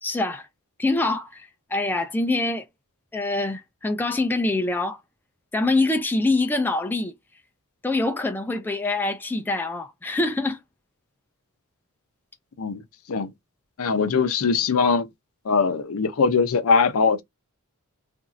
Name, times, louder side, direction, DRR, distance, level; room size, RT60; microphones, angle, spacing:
voice 1, 0.0-0.5 0.8-2.7 3.1-5.0 5.5-7.1 7.8-10.6, left 2 dB, 10° left, 0.3 m, -25 dB
voice 2, 13.8-15.1 15.4-17.2, left 5 dB, 70° left, 0.5 m, -21 dB
2.8 x 2.6 x 2.4 m
head